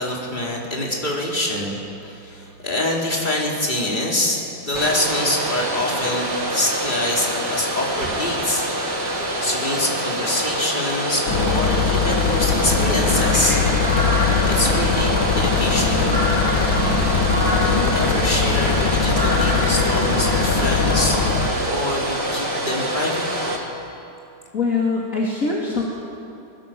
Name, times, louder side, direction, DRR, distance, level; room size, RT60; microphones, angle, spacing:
voice 1, 0.0-8.7 9.0-9.1 9.4-13.6 14.4-16.2 17.6-23.3, left 1 dB, 25° left, -3 dB, 4.4 m, -25 dB
Domestic sounds home sounds, 4.7-23.6, right 1 dB, 60° right, 3.4 m, -26 dB
sound 1, 11.3-21.5, left 5 dB, 85° left, 2.3 m, -21 dB
sound 2, 13.0-21.7, left 1 dB, 5° right, 6.4 m, -28 dB
voice 2, 24.5-25.8, left 4 dB, 45° left, -4 dB, 2.9 m, -22 dB
28.0 x 20.5 x 7.7 m, 2.7 s
omnidirectional pair, 2.1 m